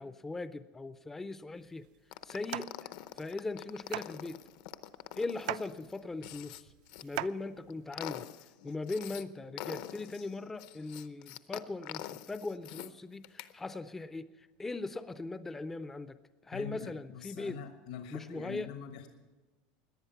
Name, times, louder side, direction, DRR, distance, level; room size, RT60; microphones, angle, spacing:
voice 1, 0.0-1.9 2.2-2.9 3.2-4.4 5.2-6.7 7.0-8.3 8.6-16.2 16.4-17.6 18.1-18.7, left 3 dB, 10° left, 12 dB, 0.4 m, -39 dB
sound 1, 1.6-8.0, right 16 dB, 70° right, 0.4 m, -43 dB
sound 2, 2.1-7.0 7.5-9.2 9.6-12.9 13.2-13.5, left 13 dB, 60° left, 0.7 m, -45 dB
voice 2, 16.5-19.1, left 7 dB, 75° left, 6 dB, 1.3 m, -44 dB
18.0 x 11.0 x 5.7 m, 1.3 s
supercardioid pair, 165°, 4 cm